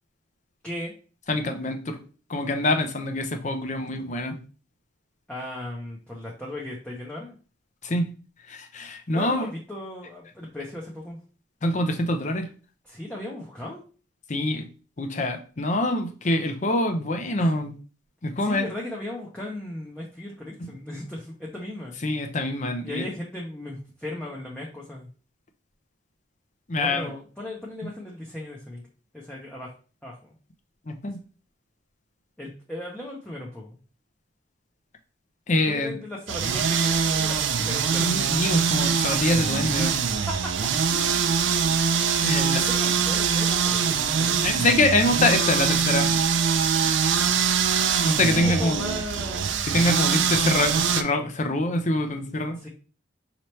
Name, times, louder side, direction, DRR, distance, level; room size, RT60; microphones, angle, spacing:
voice 1, 0.6-0.9 5.3-7.4 9.1-11.2 12.8-13.8 17.4-17.5 18.4-22.0 22.8-25.1 26.7-28.8 29.1-29.7 30.0-30.3 32.4-33.8 35.7-38.8 40.3-40.5 40.9-41.3 42.3-44.4 48.3-49.5 52.6-52.7, left 1 dB, 5° left, -4 dB, 0.7 m, -37 dB
voice 2, 1.3-2.0 2.3-4.4 7.8-8.1 8.5-9.5 11.6-12.5 14.3-14.6 15.0-17.7 18.2-18.7 20.6-20.7 22.0-23.0 26.7-27.1 30.9-31.2 35.5-35.9 38.0-39.9 42.2-42.6 44.4-46.2 46.8-47.2 48.0-48.8 49.7-52.6, left 2 dB, 40° left, 6 dB, 0.6 m, -25 dB
sound 1, 36.3-51.0, right 6 dB, 85° right, 0.5 m, -23 dB
5.4 x 3.0 x 3.1 m, 0.37 s
head